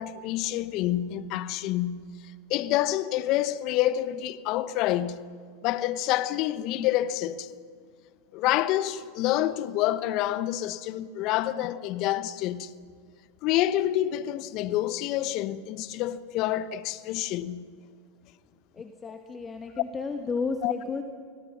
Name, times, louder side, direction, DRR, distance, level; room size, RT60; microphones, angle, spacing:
voice 1, 0.0-2.1 2.5-5.2 5.6-7.5 8.3-12.7 13.4-17.7 20.6-20.7, left 13 dB, 50° left, 0.9 m, -27 dB
voice 2, 18.7-21.0, left 4 dB, 20° left, 1.6 m, -33 dB
29.0 x 21.0 x 6.1 m
hypercardioid pair, 95°, 0 cm